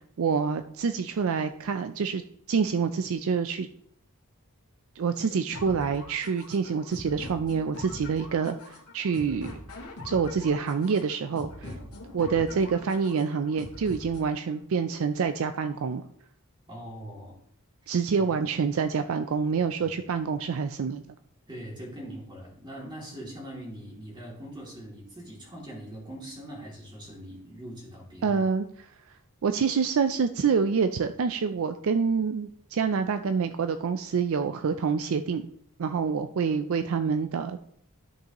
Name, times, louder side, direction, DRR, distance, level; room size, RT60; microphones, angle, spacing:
voice 1, 0.2-2.2 2.5-3.7 5.0-9.6 10.0-11.5 12.1-16.0 17.9-21.0 28.2-28.7 29.4-35.4 35.8-37.6, right 5 dB, 65° right, 9 dB, 0.4 m, -27 dB
sound 1, 5.5-14.5, left 1 dB, 90° left, 1.9 m, -43 dB
voice 2, 11.6-11.9 12.2-12.4 16.7-17.4 17.8-17.9 18.2-18.3 21.5-28.4, right 1 dB, 20° right, -3 dB, 2.5 m, -42 dB
13.0 x 5.4 x 2.9 m, 0.68 s
head